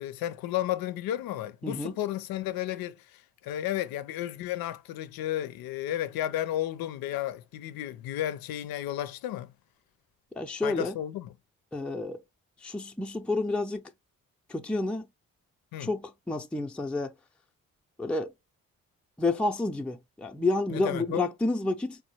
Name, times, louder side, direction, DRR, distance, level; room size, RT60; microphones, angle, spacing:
voice 1, 0.0-9.5 10.6-11.4 15.7-15.9 20.7-21.3, left 12 dB, 80° left, 0.6 m, -33 dB
voice 2, 10.4-10.9 11.7-12.2 12.6-13.8 14.5-15.1 15.8-17.1 18.0-18.3 19.2-22.0, left 2 dB, 5° left, 0.6 m, -29 dB
4.3 x 2.2 x 2.9 m
supercardioid pair, 45°, 35 cm